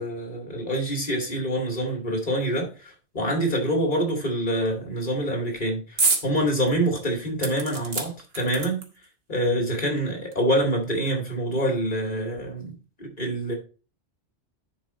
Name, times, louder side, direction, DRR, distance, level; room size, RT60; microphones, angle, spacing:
voice 1, 0.0-8.8 9.3-12.7 13.0-13.5, right 1 dB, 40° left, 2.3 m, -26 dB
sound 1, 6.0-6.3 6.7-6.8 7.4-9.1 10.0-10.1 10.3-10.4, right 3 dB, 55° right, 1.5 m, -27 dB
10.5 x 4.2 x 4.1 m
omnidirectional pair, 1.2 m